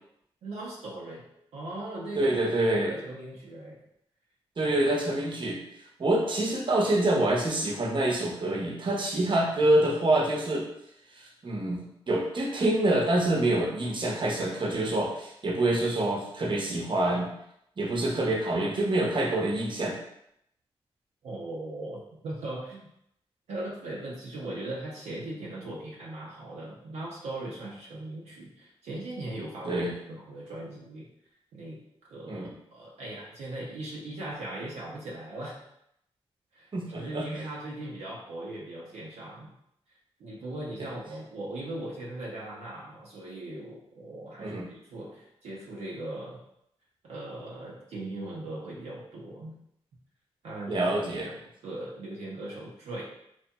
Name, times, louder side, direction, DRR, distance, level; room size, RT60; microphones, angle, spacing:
voice 1, 0.4-2.4 2.7-3.8 21.2-22.9 23.5-31.1 31.5-31.8 32.1-35.6 36.5-36.7 37.0-39.5 40.2-46.4 47.0-49.6 50.4-50.9 51.2-51.4 51.6-53.0, right 1 dB, 80° right, -4 dB, 0.6 m, -39 dB
voice 2, 2.1-3.0 4.6-5.6 6.0-10.7 11.2-17.3 17.8-20.0 29.6-29.9 32.3-32.5 36.7-37.2 44.4-44.7 50.7-51.3, right 1 dB, 50° right, -1 dB, 0.7 m, -26 dB
2.9 x 2.3 x 2.2 m, 0.74 s
supercardioid pair, 45°, 11 cm